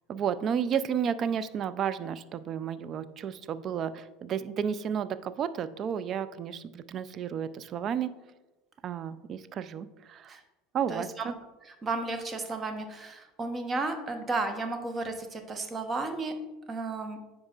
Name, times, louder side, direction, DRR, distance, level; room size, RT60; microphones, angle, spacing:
voice 1, 0.1-8.1 8.8-10.3 10.7-11.3, right 8 dB, 45° right, 14 dB, 0.4 m, -32 dB
voice 2, 10.9-11.3 11.6-16.3 16.7-17.2, right 3 dB, 30° right, 6 dB, 1.0 m, -33 dB
9.4 x 4.8 x 2.4 m, 1.1 s
hypercardioid pair, 85°, 0 cm